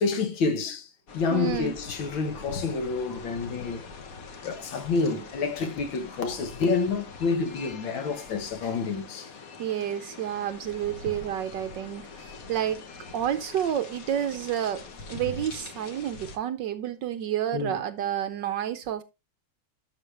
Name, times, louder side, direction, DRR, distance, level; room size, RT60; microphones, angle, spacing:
voice 1, 0.0-3.8 4.4-9.3 17.5-17.8, left 4 dB, 70° left, 2.0 m, -28 dB
sound 1, 1.1-16.4, left 4 dB, 45° left, 1.4 m, -43 dB
voice 2, 1.3-1.8 9.6-12.9 13.1-19.0, right 10 dB, 70° right, 1.2 m, -30 dB
11.5 x 6.5 x 3.3 m
omnidirectional pair, 2.3 m